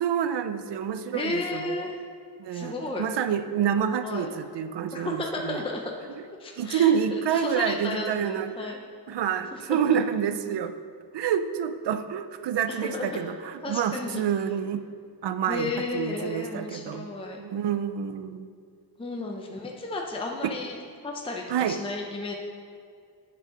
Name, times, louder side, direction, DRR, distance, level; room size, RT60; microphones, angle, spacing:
voice 1, 0.0-1.8 2.4-5.6 6.6-8.8 9.1-10.7 11.1-14.8 15.2-17.1 17.4-18.5 20.4-20.5 21.5-21.8, right 8 dB, 85° right, 10 dB, 0.5 m, -28 dB
voice 2, 1.1-2.0 2.5-3.1 4.0-4.3 4.9-5.8 6.4-8.8 9.5-10.0 12.7-13.2 13.6-14.2 15.5-17.4 19.0-20.8 21.0-22.3, left 3 dB, 15° left, 0 dB, 0.6 m, -33 dB
8.9 x 4.7 x 5.1 m, 2.3 s
wide cardioid pair, 150°, 40 cm